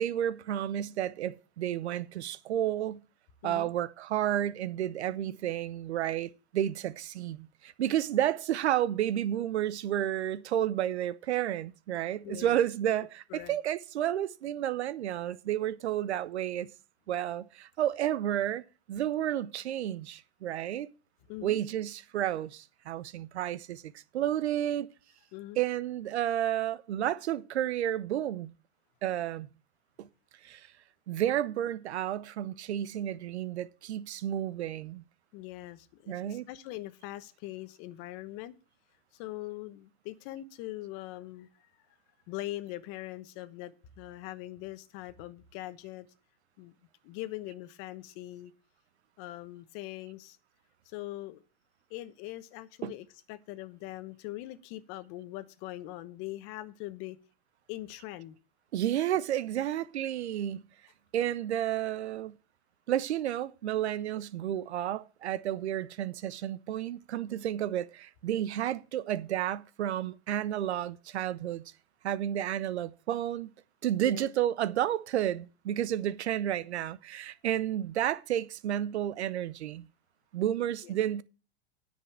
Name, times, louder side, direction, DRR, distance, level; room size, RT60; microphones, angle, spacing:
voice 1, 0.0-3.0 3.4-16.7 17.1-18.6 18.9-20.9 21.4-24.9 25.6-28.5 29.0-29.5 30.0-30.1 30.4-30.7 31.1-35.0 36.1-36.5 52.8-52.9 58.7-60.6 61.1-62.4 62.9-71.6 72.0-73.5 73.8-79.9 80.3-81.2, right 11 dB, 85° right, 0.8 m, -31 dB
voice 2, 12.2-12.6 13.3-13.6 21.3-21.6 25.3-25.6 35.3-38.6 39.1-41.5 42.3-46.1 46.6-46.7 47.0-48.5 49.2-50.4 50.8-51.4 51.9-57.2 57.7-58.4 74.0-74.3 80.8-80.9, left 16 dB, 45° left, 1.1 m, -42 dB
9.9 x 5.4 x 7.4 m
hypercardioid pair, 125°, 32 cm